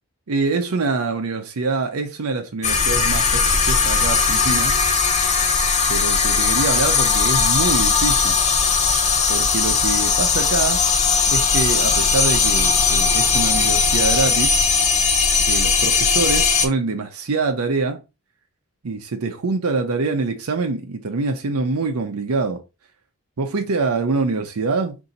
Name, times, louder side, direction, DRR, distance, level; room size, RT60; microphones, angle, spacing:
voice 1, 0.3-4.7 5.9-8.4 9.3-10.8 11.3-14.6 15.5-18.0 18.8-22.6 23.4-24.9, right 3 dB, 80° right, 0.6 m, -24 dB
sound 1, 2.6-16.7, left 5 dB, 30° left, 0.7 m, -18 dB
4.1 x 2.7 x 3.8 m
head